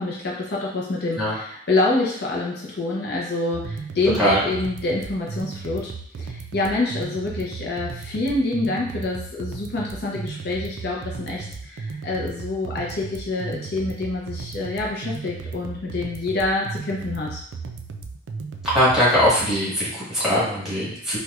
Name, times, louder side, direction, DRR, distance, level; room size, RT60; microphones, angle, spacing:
voice 1, 0.0-5.9 6.2-17.4, left 2 dB, 55° left, -3 dB, 0.5 m, -26 dB
sound 1, 3.5-19.5, right 4 dB, 75° right, 0.3 m, -35 dB
voice 2, 18.7-21.2, equal, ahead, -10 dB, 1.4 m, -20 dB
4.3 x 2.2 x 2.4 m, 0.67 s
head